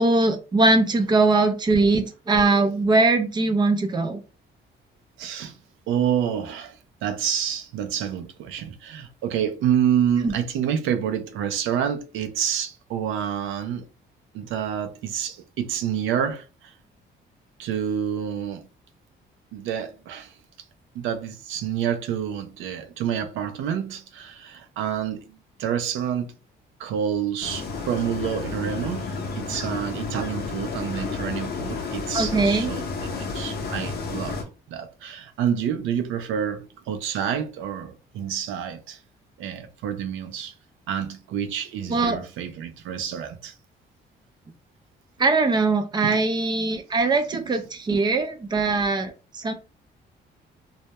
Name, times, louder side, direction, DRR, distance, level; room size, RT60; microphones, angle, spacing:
voice 1, 0.0-4.2 10.2-10.3 32.1-32.7 41.9-42.2 45.2-49.5, right 3 dB, 20° right, 0.5 m, -21 dB
voice 2, 5.2-5.6 5.9-13.9 14.3-16.7 17.6-18.7 19.5-20.4 20.9-26.3 26.8-32.8 33.2-34.4 34.7-39.0 39.4-40.5 40.9-43.5 46.0-46.2 47.9-48.0, right 8 dB, 85° right, 0.4 m, -28 dB
sound 1, 27.4-34.4, left 4 dB, 55° left, 0.7 m, -31 dB
2.2 x 2.0 x 2.8 m
cardioid pair, 90°, 20 cm